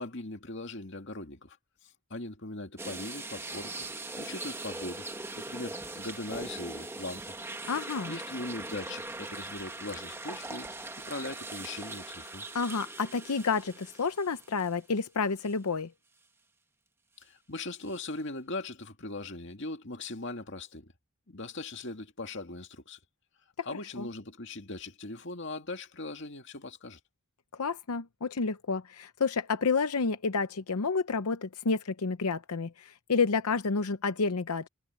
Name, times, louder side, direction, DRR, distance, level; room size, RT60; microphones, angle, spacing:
voice 1, 0.0-1.6 1.8-5.1 5.4-7.3 8.1-10.7 11.1-12.4 17.2-20.9 21.3-23.0 23.7-27.0, left 2 dB, 55° left, 2.3 m, -40 dB
sound 1, 2.8-15.0 15.4-15.5 17.9-18.0, right 2 dB, 10° right, 1.5 m, -41 dB
voice 2, 7.7-8.2 12.5-15.9 23.6-23.7 24.0-24.1 27.6-34.7, left 4 dB, 90° left, 0.8 m, -30 dB
head